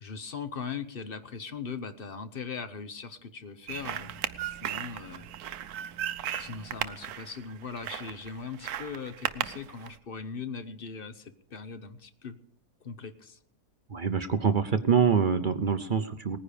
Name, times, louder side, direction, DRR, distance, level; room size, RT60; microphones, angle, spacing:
voice 1, 0.0-5.3 6.4-12.4 12.8-13.4, left 5 dB, 45° left, 10 dB, 0.9 m, -40 dB
sound 1, 3.7-10.0, right 10 dB, 70° right, 1.2 m, -36 dB
voice 2, 13.9-16.4, right 6 dB, 50° right, 10 dB, 0.6 m, -25 dB
19.0 x 10.0 x 5.0 m, 0.63 s
omnidirectional pair, 1.7 m